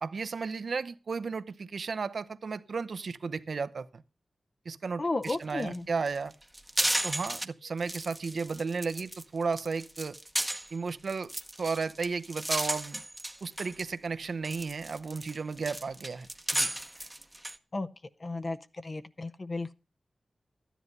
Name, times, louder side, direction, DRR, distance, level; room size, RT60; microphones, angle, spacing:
voice 1, 0.0-4.0 4.6-6.3 7.0-10.2 10.7-11.3 11.6-13.0 13.4-16.7, right 4 dB, 65° right, 0.7 m, -34 dB
voice 2, 5.0-5.8 17.7-17.9 18.2-18.6 18.8-19.7, left 2 dB, 35° left, 0.6 m, -33 dB
sound 1, 5.2-5.3 5.6-5.8 6.1-7.4 7.8-9.2 9.5-13.8 14.2-17.6, right 1 dB, 10° right, 0.8 m, -34 dB
13.5 x 10.0 x 5.4 m
wide cardioid pair, 135°, 0 cm